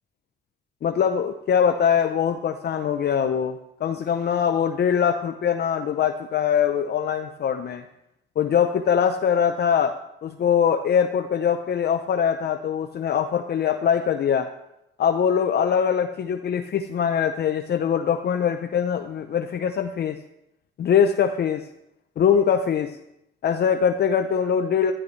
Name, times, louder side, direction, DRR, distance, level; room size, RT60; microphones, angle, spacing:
voice 1, 0.8-7.8 8.4-10.0 10.2-14.5 15.0-20.2 20.8-21.6 22.2-23.0 23.4-24.9, left 8 dB, 55° left, 7 dB, 0.7 m, -22 dB
16.0 x 12.0 x 3.2 m, 0.84 s
cardioid pair, 90°, 20 cm